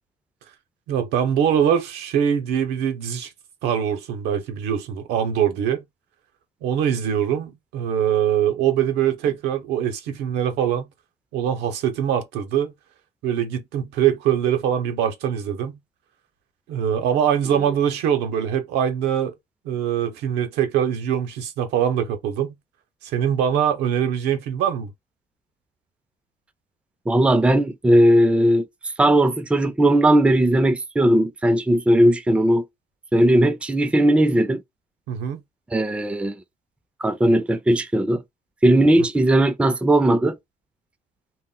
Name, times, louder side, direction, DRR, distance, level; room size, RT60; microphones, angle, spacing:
voice 1, 0.9-3.3 3.6-5.8 6.6-10.9 11.3-12.7 13.2-15.8 16.7-19.4 19.6-22.5 23.0-24.9 35.1-35.4, right 9 dB, 90° right, 0.6 m, -23 dB
voice 2, 27.1-32.7 33.1-34.6 35.7-36.3 37.0-38.2 38.6-40.4, right 1 dB, 5° right, 0.3 m, -18 dB
2.1 x 2.1 x 3.7 m
cardioid pair, 110°, 17 cm